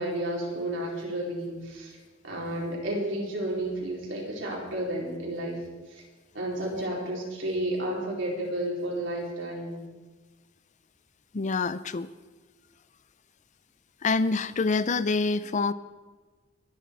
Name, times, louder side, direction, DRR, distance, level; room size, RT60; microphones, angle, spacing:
voice 1, 0.0-2.0 2.2-5.6 5.9-6.0 6.3-9.8, right 1 dB, 70° right, -3 dB, 4.6 m, -32 dB
voice 2, 11.3-12.1 14.0-15.7, left 4 dB, 40° left, 15 dB, 0.5 m, -26 dB
22.5 x 10.0 x 4.7 m, 1.3 s
head